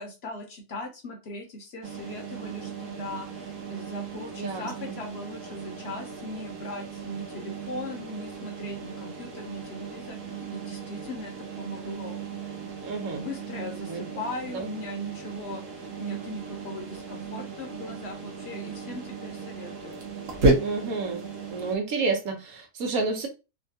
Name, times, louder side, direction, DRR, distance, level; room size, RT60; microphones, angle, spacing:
voice 1, 0.0-12.2 13.2-20.0, left 1 dB, 55° left, 0.9 m, -39 dB
sound 1, 1.8-21.8, right 3 dB, 65° right, 1.1 m, -34 dB
voice 2, 4.3-5.0 12.8-13.2 13.9-14.1 14.5-14.7 20.6-21.2 21.5-23.3, right 4 dB, 85° right, 1.3 m, -30 dB
3.3 x 2.2 x 2.7 m
omnidirectional pair, 1.5 m